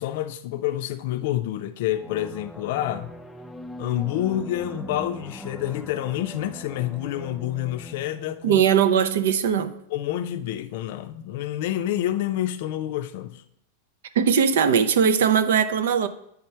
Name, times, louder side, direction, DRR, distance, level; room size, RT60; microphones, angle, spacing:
voice 1, 0.0-3.1 3.8-8.6 9.9-13.4, left 13 dB, 65° left, 0.4 m, -28 dB
sound 1, 1.9-9.3, equal, 5° left, 0.4 m, -41 dB
voice 2, 8.4-9.8 14.1-16.1, right 7 dB, 80° right, 0.5 m, -20 dB
8.4 x 3.7 x 4.4 m
hypercardioid pair, 115°, 0 cm